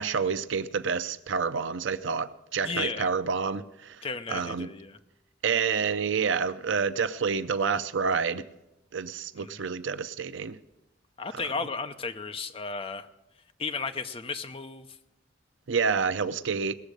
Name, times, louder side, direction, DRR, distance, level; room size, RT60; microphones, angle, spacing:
voice 1, 0.0-4.0 4.3-4.7 5.4-8.4 8.9-10.6 11.3-11.4 15.7-16.8, right 5 dB, 75° right, 0.6 m, -28 dB
voice 2, 2.6-3.1 4.0-5.0 9.4-9.7 11.2-13.1 13.6-14.9, left 4 dB, 30° left, 0.7 m, -34 dB
19.0 x 7.2 x 6.5 m
head